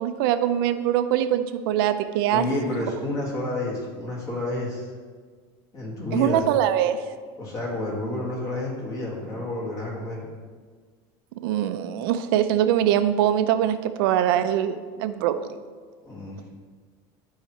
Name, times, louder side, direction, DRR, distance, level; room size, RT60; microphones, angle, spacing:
voice 1, 0.0-2.4 6.1-7.0 11.4-15.5, right 11 dB, 80° right, 10 dB, 0.5 m, -23 dB
voice 2, 2.3-4.9 5.7-6.5 7.4-10.3 16.0-16.5, left 2 dB, 30° left, -3 dB, 2.1 m, -30 dB
12.0 x 4.7 x 3.2 m, 1.6 s
supercardioid pair, 150°, 12 cm